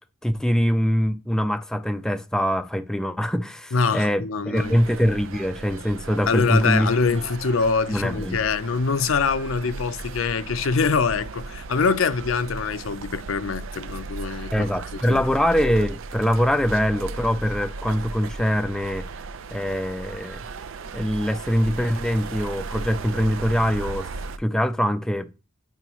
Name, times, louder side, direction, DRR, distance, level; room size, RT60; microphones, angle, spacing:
voice 1, 0.2-6.9 7.9-8.4 14.5-19.1 19.5-20.4 20.9-24.1 24.4-25.3, equal, 5° left, 0.3 m, -23 dB
voice 2, 3.7-4.8 6.3-14.7 15.1-15.2, left 5 dB, 75° left, 0.5 m, -24 dB
sound 1, 4.5-24.4, right 3 dB, 70° right, 0.5 m, -36 dB
9.0 x 5.4 x 3.0 m
head